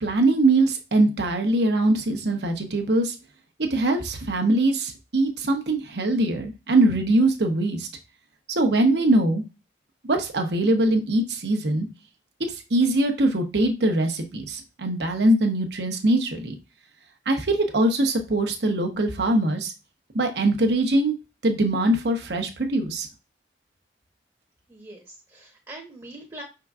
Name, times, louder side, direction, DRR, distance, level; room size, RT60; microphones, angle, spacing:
voice 1, 0.0-3.1 3.6-7.9 8.5-9.4 10.1-11.9 12.5-16.6 17.3-19.7 20.1-21.2 21.4-23.1, right 2 dB, 70° right, 4 dB, 0.8 m, -22 dB
voice 2, 24.7-26.4, right 1 dB, 20° right, 1 dB, 0.8 m, -42 dB
5.7 x 3.8 x 2.3 m, 0.28 s
head